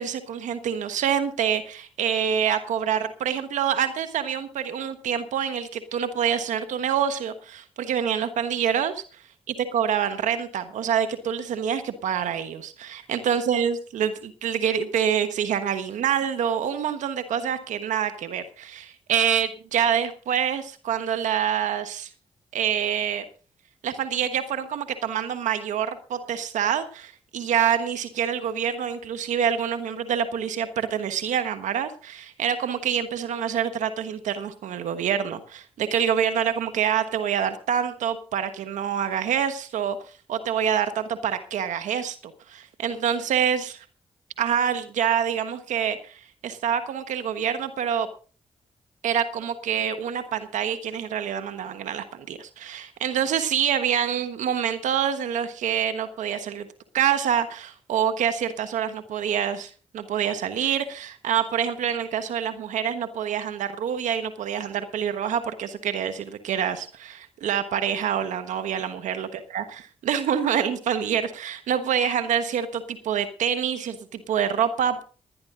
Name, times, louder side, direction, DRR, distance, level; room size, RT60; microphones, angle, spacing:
voice 1, 0.0-9.0 9.7-22.1 22.5-23.2 23.8-40.0 40.3-42.2 42.5-43.8 44.4-48.1 49.0-56.7 56.9-69.3 69.5-75.0, right 8 dB, 80° right, 10 dB, 1.4 m, -26 dB
19.5 x 10.5 x 3.8 m, 0.37 s
supercardioid pair, 45°, 12 cm